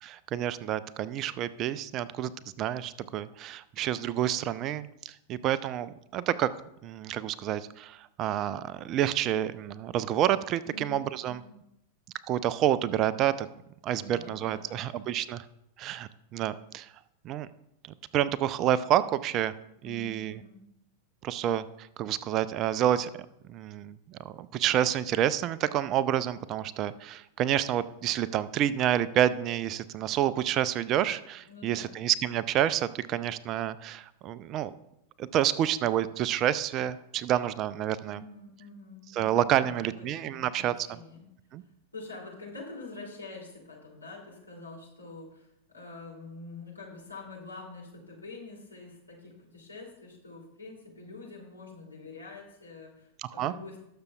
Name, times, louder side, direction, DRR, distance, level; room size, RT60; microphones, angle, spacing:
voice 1, 0.0-2.3 2.6-6.5 6.8-11.4 12.3-13.5 13.8-15.5 15.8-16.9 17.2-17.5 18.1-19.5 19.8-20.4 21.2-23.1 23.5-34.7 35.2-38.2 39.1-40.9 41.5-41.6 53.2-53.5, right 11 dB, 35° right, 17 dB, 0.4 m, -29 dB
voice 2, 10.6-11.6 13.9-14.9 19.8-20.7 31.5-31.9 37.8-41.3 41.9-53.8, left 3 dB, 80° left, -3 dB, 2.9 m, -46 dB
19.0 x 6.7 x 2.3 m, 0.80 s
figure-of-eight pair, 90°, 0 cm